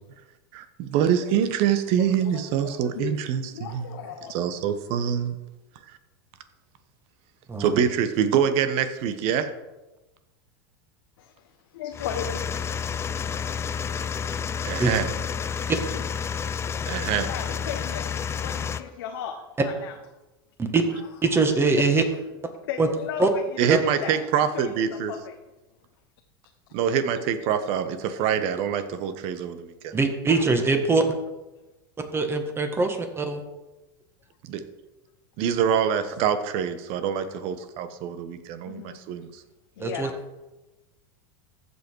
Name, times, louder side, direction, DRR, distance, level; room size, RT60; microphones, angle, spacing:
voice 1, 0.5-3.9 4.3-5.4 7.6-9.5 14.6-15.1 16.9-17.3 23.6-25.1 26.7-29.9 34.4-34.6 35.4-39.4, right 8 dB, 55° right, 10 dB, 1.2 m, -25 dB
voice 2, 2.0-3.2 3.5-4.3 11.2-12.4 17.1-20.0 20.9-21.0 21.8-22.2 22.6-25.4 30.3-30.4 31.6-31.7 38.6-39.0 39.8-40.2, left 9 dB, 75° left, 4 dB, 1.0 m, -36 dB
sound 1, 11.9-18.8, left 7 dB, 20° left, 0.5 m, -30 dB
voice 3, 21.2-22.0 22.8-22.9 23.2-23.3 23.7-23.8 29.9-31.0 32.1-33.4 39.8-40.1, right 3 dB, 20° right, 5 dB, 1.7 m, -22 dB
14.5 x 5.5 x 4.7 m, 1.1 s
hypercardioid pair, 105°, 12 cm